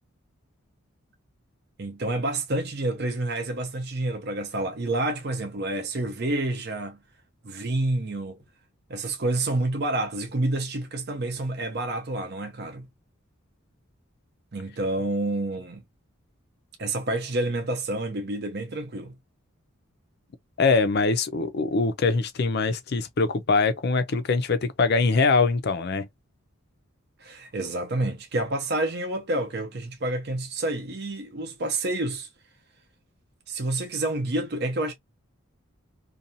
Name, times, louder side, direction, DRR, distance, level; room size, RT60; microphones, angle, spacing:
voice 1, 1.8-7.0 7.4-8.4 8.9-12.9 14.5-15.8 16.8-19.1 27.2-32.3 33.5-34.9, right 2 dB, 50° right, 0.6 m, -28 dB
voice 2, 20.6-26.1, left 4 dB, 50° left, 0.5 m, -23 dB
2.7 x 2.3 x 2.6 m
head